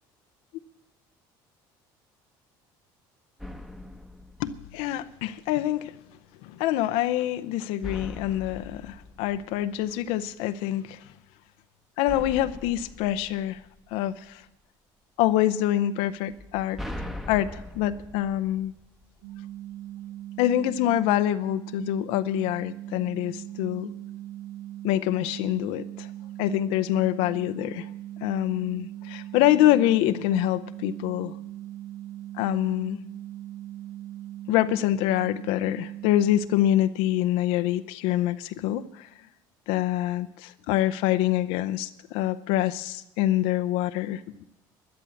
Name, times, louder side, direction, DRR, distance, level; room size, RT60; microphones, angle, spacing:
sound 1, 3.4-5.3 7.8-10.2 12.1-14.3 16.3-19.3, left 1 dB, ahead, 1.0 m, -41 dB
voice 1, 4.4-5.9 6.4-11.0 12.0-13.6 13.9-14.4 15.2-16.8 17.3-18.7 20.4-23.9 24.8-26.1 26.4-27.9 28.2-31.4 32.3-33.0 34.5-39.1 39.7-44.2, left 13 dB, 80° left, 11 dB, 0.6 m, -25 dB
sound 2, 19.2-36.1, right 13 dB, 75° right, 0.8 m, -40 dB
12.0 x 11.0 x 7.0 m, 0.83 s
supercardioid pair, 95°, 10 cm